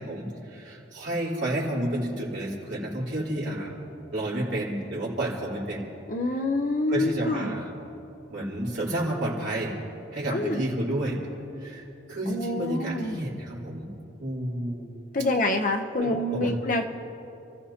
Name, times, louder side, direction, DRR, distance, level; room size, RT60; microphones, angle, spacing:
voice 1, 0.0-3.7 4.1-5.9 6.9-7.7 8.3-9.7 10.1-11.2 11.6-13.9 14.2-14.9 16.0-16.6, right 1 dB, 65° right, -6 dB, 3.6 m, -30 dB
voice 2, 6.1-7.6 10.3-10.6 12.3-13.2 15.1-16.9, left 2 dB, 40° left, 5 dB, 0.7 m, -26 dB
29.5 x 15.0 x 2.9 m, 3.0 s
head